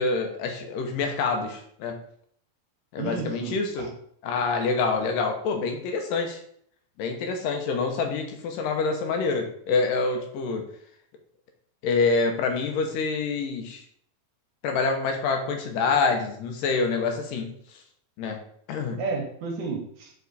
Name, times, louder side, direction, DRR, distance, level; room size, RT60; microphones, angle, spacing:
voice 1, 0.0-2.0 2.9-3.9 4.2-6.4 7.0-10.7 11.8-13.8 14.6-17.6 18.2-18.4 18.7-19.0, left 4 dB, 75° left, 4 dB, 2.4 m, -26 dB
voice 2, 3.0-3.9 19.0-20.1, right 4 dB, 65° right, 1 dB, 2.3 m, -32 dB
5.6 x 4.8 x 4.0 m, 0.65 s
omnidirectional pair, 4.1 m